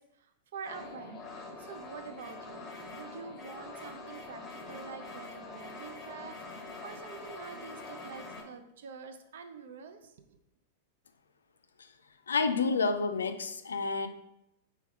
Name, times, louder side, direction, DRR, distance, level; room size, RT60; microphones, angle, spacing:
voice 1, 0.0-2.7 2.9-10.4, right 5 dB, 65° right, 7 dB, 0.5 m, -47 dB
sound 1, 0.6-8.4, left 3 dB, 20° left, 1.1 m, -45 dB
voice 2, 12.3-14.1, left 4 dB, 75° left, 9 dB, 0.4 m, -29 dB
3.4 x 3.1 x 4.6 m, 0.81 s
figure-of-eight pair, 95°, 0 cm